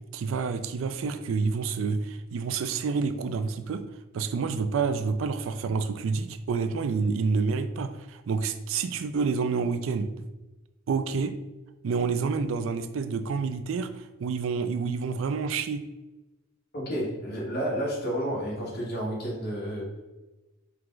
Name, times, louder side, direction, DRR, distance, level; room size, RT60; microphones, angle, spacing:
voice 1, 0.1-3.8 4.1-10.1 10.9-11.3 11.8-15.8, right 5 dB, 70° right, 10 dB, 0.3 m, -28 dB
voice 2, 16.7-20.0, equal, 55° left, -4 dB, 1.4 m, -31 dB
4.6 x 2.3 x 3.8 m, 1.1 s
head